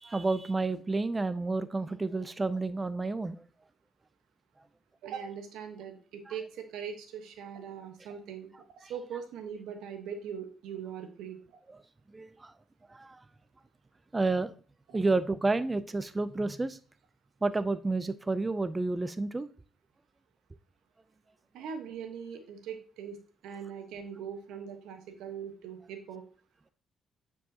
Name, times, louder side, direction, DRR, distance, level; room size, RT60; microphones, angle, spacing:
voice 1, 0.0-3.4 12.1-12.5 12.9-13.2 14.1-14.5 14.9-16.8 17.4-19.5, right 3 dB, 20° right, 13 dB, 0.4 m, -30 dB
voice 2, 5.0-8.5 8.8-11.6 14.9-15.0 21.5-23.2 23.4-26.2, right 7 dB, 90° right, 6 dB, 1.1 m, -41 dB
9.0 x 4.6 x 2.8 m, 0.41 s
cardioid pair, 90°, 0 cm